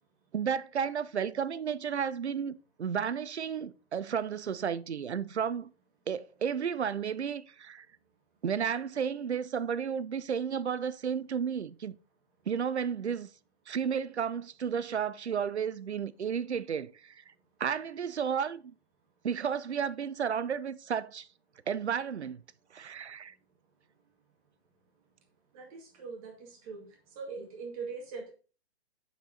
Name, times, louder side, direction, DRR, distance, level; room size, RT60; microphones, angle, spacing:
voice 1, 0.3-5.7 6.1-7.9 8.4-12.0 12.5-13.3 13.7-17.2 17.6-18.7 19.2-21.3 21.7-22.4 22.7-23.3, right 7 dB, 85° right, 0.7 m, -32 dB
voice 2, 25.5-26.9 27.2-28.3, right 4 dB, 35° right, 2.0 m, -41 dB
8.2 x 4.7 x 3.9 m
hypercardioid pair, 140°, 33 cm